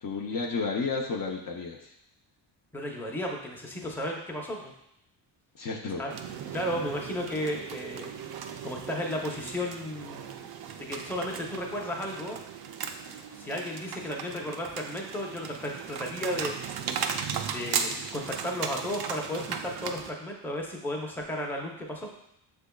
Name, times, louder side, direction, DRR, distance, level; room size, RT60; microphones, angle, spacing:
voice 1, 0.0-1.9 5.5-6.0, left 4 dB, 45° left, 0 dB, 0.7 m, -32 dB
voice 2, 2.7-4.7 5.9-6.1 6.5-8.1 8.6-10.4 10.7-12.4 13.4-16.8 17.4-22.1, left 1 dB, 5° left, -1 dB, 0.7 m, -34 dB
sound 1, 6.1-20.1, right 7 dB, 50° right, 0.5 m, -37 dB
6.3 x 3.4 x 2.3 m, 0.75 s
cardioid pair, 90°, 48 cm